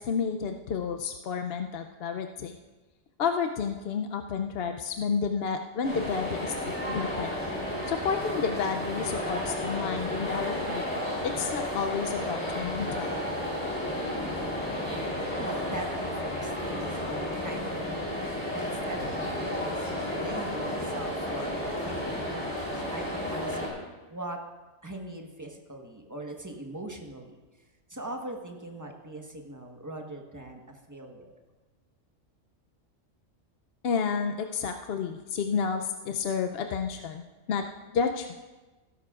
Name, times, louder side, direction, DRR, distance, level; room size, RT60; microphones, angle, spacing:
voice 1, 0.0-2.6 3.2-6.5 6.9-7.3 7.9-10.9 11.2-13.1 33.8-37.2 37.5-37.6 37.9-38.4, left 6 dB, 60° left, 5 dB, 0.7 m, -30 dB
sound 1, 5.8-23.7, left 1 dB, 10° left, 3.3 m, -32 dB
voice 2, 15.4-23.6 24.1-24.4 24.8-27.4 27.9-31.3, right 1 dB, 15° right, 2 dB, 1.1 m, -41 dB
16.0 x 13.0 x 2.4 m, 1.2 s
omnidirectional pair, 1.3 m